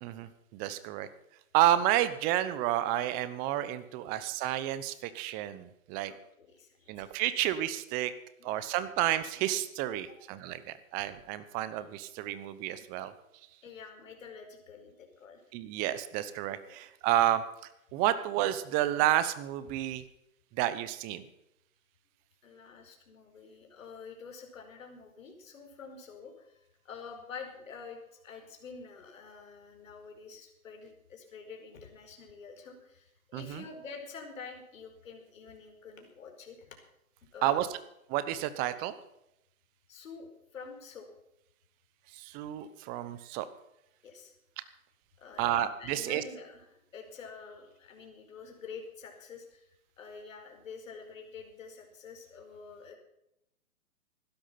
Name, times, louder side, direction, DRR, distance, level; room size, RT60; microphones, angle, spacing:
voice 1, 0.0-1.1 1.5-6.1 6.9-8.1 8.4-13.1 15.5-17.4 17.9-20.0 20.5-21.3 33.3-33.6 37.4-37.7 38.1-39.0 42.1-43.5 45.4-46.2, right 13 dB, 20° right, 14 dB, 0.9 m, -30 dB
voice 2, 6.1-7.1 8.4-8.6 13.6-15.4 16.6-16.8 22.4-36.7 37.3-37.7 39.9-41.1 44.0-44.3 45.2-46.6 46.9-49.7 50.0-52.9, left 5 dB, 65° left, 3 dB, 5.1 m, -47 dB
16.0 x 12.5 x 5.9 m, 0.82 s
hypercardioid pair, 145°, 42 cm